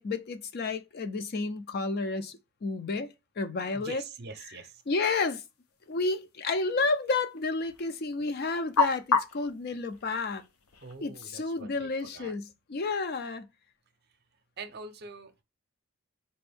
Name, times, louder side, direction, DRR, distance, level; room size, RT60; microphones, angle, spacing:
voice 1, 0.0-4.0 4.9-5.4 5.9-10.4 11.0-13.5, left 3 dB, 45° left, 0.4 m, -31 dB
voice 2, 3.7-4.8 10.8-12.3 14.6-15.4, right 4 dB, 50° right, 0.6 m, -44 dB
sound 1, 4.7-11.6, left 5 dB, 85° left, 0.7 m, -35 dB
4.3 x 2.6 x 3.4 m
head